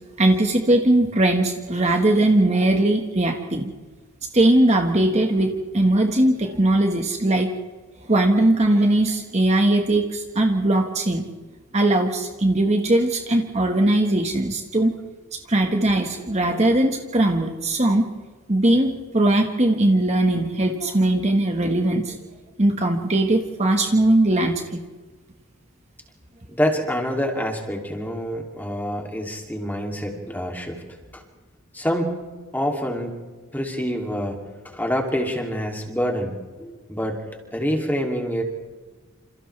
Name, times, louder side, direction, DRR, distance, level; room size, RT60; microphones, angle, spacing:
voice 1, 0.2-3.7 4.3-7.5 8.0-11.2 11.7-14.9 15.3-18.1 18.5-22.2 22.6-24.8, right 1 dB, 30° right, 3 dB, 1.5 m, -20 dB
voice 2, 26.5-30.8 31.1-31.2 31.7-32.2 32.5-33.2 33.5-34.4 34.7-37.2 37.5-38.4, equal, 10° left, 1 dB, 2.9 m, -26 dB
28.5 x 28.0 x 3.4 m, 1.3 s
head